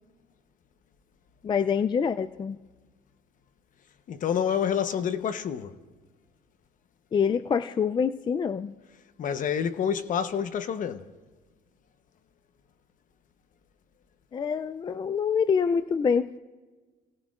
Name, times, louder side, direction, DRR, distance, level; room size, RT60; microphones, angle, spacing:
voice 1, 1.4-2.6 7.1-8.8 14.3-16.4, left 6 dB, 25° left, 0.4 m, -26 dB
voice 2, 4.1-5.7 9.2-11.1, left 8 dB, 50° left, 1.0 m, -28 dB
29.0 x 18.0 x 2.5 m
cardioid pair, 110°, 17 cm